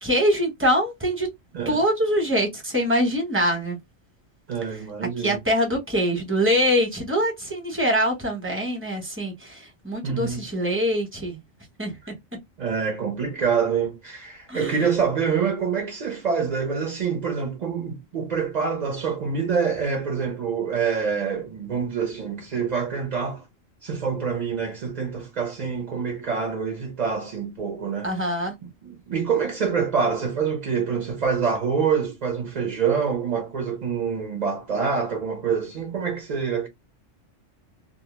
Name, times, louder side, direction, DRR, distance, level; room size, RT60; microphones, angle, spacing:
voice 1, 0.0-1.3 1.6-3.8 5.2-11.4 11.8-11.9 14.5-14.7 28.0-28.5, equal, 10° right, 0.8 m, -24 dB
voice 2, 4.5-5.4 10.0-10.4 12.6-23.4 23.8-28.3 28.8-36.7, right 6 dB, 45° right, 0.6 m, -26 dB
2.3 x 2.1 x 3.0 m
omnidirectional pair, 1.3 m